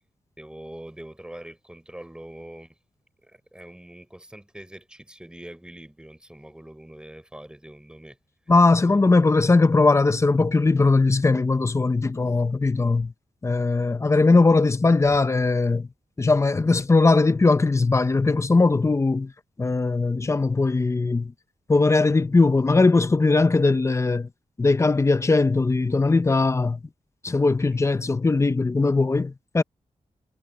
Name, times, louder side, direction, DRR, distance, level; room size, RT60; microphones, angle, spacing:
voice 1, 0.4-2.8 3.2-8.2 27.7-27.8, right 1 dB, 5° right, 6.1 m, -43 dB
voice 2, 8.5-13.1 13.4-15.9 16.2-19.3 19.6-21.3 21.7-24.3 24.6-26.8 27.2-29.6, left 3 dB, 20° left, 0.7 m, -20 dB
wide cardioid pair, 155°, 13 cm